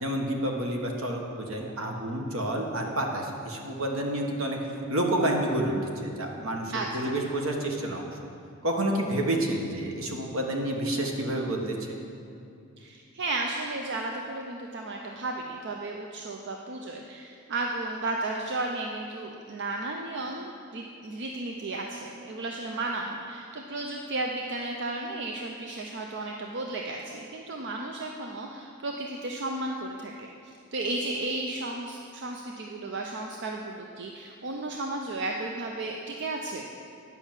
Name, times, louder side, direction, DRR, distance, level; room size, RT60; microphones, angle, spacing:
voice 1, 0.0-5.8 6.0-8.3 8.6-12.0, right 1 dB, 75° right, 1 dB, 1.3 m, -29 dB
voice 2, 6.7-7.1 12.8-36.7, right 2 dB, 60° right, 1 dB, 0.6 m, -34 dB
9.9 x 5.9 x 7.4 m, 2.5 s
head